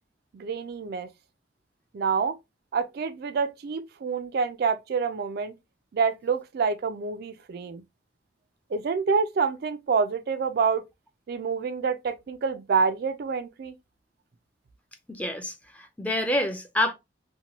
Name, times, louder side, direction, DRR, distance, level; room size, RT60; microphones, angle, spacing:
voice 1, 0.3-1.1 1.9-2.4 2.7-5.6 5.9-7.8 8.7-10.8 11.3-13.7, right 5 dB, 60° right, 0.3 m, -27 dB
voice 2, 15.1-16.9, left 1 dB, 10° left, 0.5 m, -27 dB
2.8 x 2.2 x 2.8 m
head